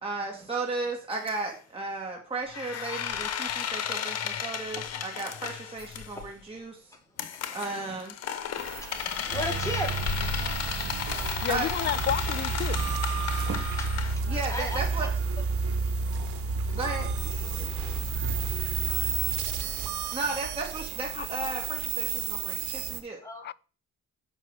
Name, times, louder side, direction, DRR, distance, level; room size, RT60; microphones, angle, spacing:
voice 1, 0.0-6.8 7.5-8.1 11.5-11.7 14.3-15.1 16.7-17.1 20.1-23.2, right 3 dB, 20° right, 2.3 m, -34 dB
sound 1, 1.1-1.3 2.5-6.3 7.2-14.1, left 8 dB, 60° left, 1.0 m, -34 dB
voice 2, 7.5-8.0 8.8-10.1 14.5-14.8 18.8-19.1 23.2-23.4, left 1 dB, 10° left, 2.2 m, -36 dB
sound 2, 8.6-23.0, right 11 dB, 75° right, 1.1 m, -36 dB
sound 3, 9.3-19.9, right 3 dB, 50° right, 1.4 m, -31 dB
voice 3, 11.4-13.0 21.1-21.3 23.4-23.5, left 11 dB, 40° left, 0.4 m, -31 dB
7.3 x 5.5 x 6.2 m
cardioid pair, 100°, 29 cm